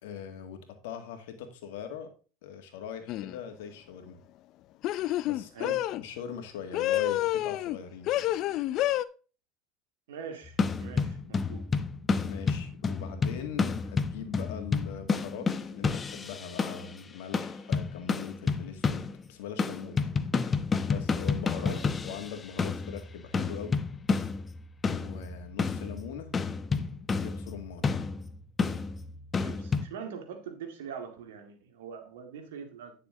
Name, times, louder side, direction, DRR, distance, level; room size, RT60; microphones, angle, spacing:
voice 1, 0.0-2.1 2.4-4.2 5.2-8.3 12.2-20.2 20.8-23.9 24.9-26.4 27.1-27.9, left 8 dB, 85° left, 7 dB, 1.9 m, -41 dB
sound 1, 3.1-3.4 4.8-6.0 6.7-7.8 8.1-9.1, left 14 dB, 60° left, 0.5 m, -28 dB
voice 2, 10.1-11.7 21.6-21.8 29.4-32.9, right 7 dB, 90° right, 6 dB, 2.0 m, -43 dB
sound 2, 10.5-17.0 17.3-19.3 19.6-29.9, left 4 dB, 30° left, 0.8 m, -30 dB
9.7 x 6.6 x 3.7 m, 0.36 s
supercardioid pair, 95°, 0 cm